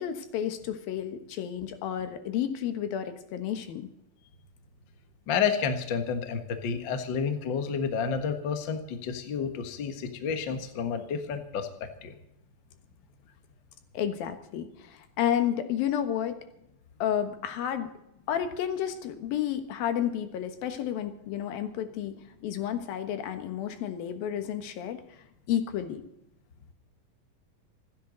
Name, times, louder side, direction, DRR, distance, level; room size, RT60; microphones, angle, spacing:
voice 1, 0.0-3.9 13.9-16.4 17.0-17.9 18.3-22.1 22.4-25.0 25.5-26.0, left 10 dB, 70° left, 8 dB, 3.1 m, -31 dB
voice 2, 5.3-12.1, left 6 dB, 55° left, 7 dB, 1.3 m, -30 dB
26.5 x 10.5 x 4.0 m, 0.79 s
omnidirectional pair, 4.4 m